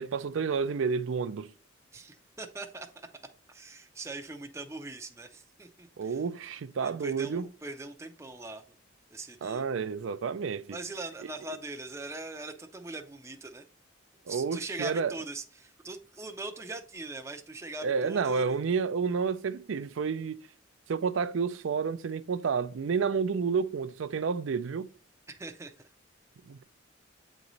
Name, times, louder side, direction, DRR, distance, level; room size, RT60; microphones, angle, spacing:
voice 1, 0.0-1.5 6.0-7.5 9.4-10.8 14.3-15.1 17.8-20.4 20.9-24.9 26.5-26.7, right 5 dB, 75° right, 0.4 m, -30 dB
voice 2, 1.9-2.9 3.5-6.2 6.8-8.6 9.1-9.6 10.7-13.7 14.3-18.6 25.3-25.7, right 2 dB, 15° right, 0.5 m, -41 dB
8.5 x 3.1 x 3.9 m
head